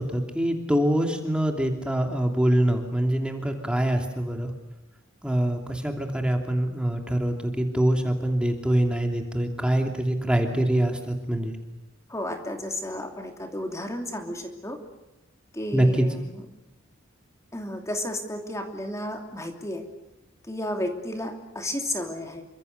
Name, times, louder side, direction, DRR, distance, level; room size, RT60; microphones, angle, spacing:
voice 1, 0.0-4.5 5.2-11.6 15.7-16.1, right 1 dB, 5° right, 3 dB, 2.8 m, -24 dB
voice 2, 12.1-14.8 15.5-16.2 17.5-19.8 20.5-22.4, left 1 dB, 15° left, 3 dB, 2.9 m, -32 dB
28.5 x 25.0 x 6.8 m, 0.95 s
head